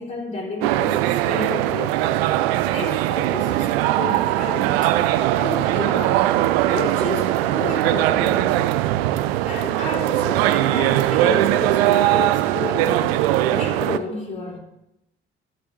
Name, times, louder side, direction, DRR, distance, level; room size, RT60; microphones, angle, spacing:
voice 1, 0.0-4.9 5.4-8.7 9.5-14.6, left 3 dB, 20° left, 4.8 m, -32 dB
sound 1, 0.6-14.0, right 14 dB, 65° right, 0.5 m, -20 dB
15.0 x 10.5 x 3.0 m
figure-of-eight pair, 45°, 32 cm